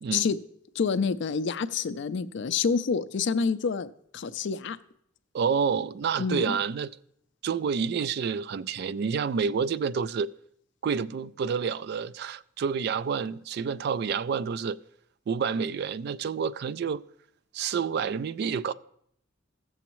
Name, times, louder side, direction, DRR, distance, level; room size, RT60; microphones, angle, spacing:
voice 1, 0.8-4.8 6.2-6.6, left 5 dB, 60° left, 0.4 m, -28 dB
voice 2, 5.3-6.9 7.4-10.3 10.8-14.8 15.3-17.0 17.5-18.7, right 6 dB, 55° right, 0.3 m, -28 dB
16.0 x 7.1 x 3.0 m
head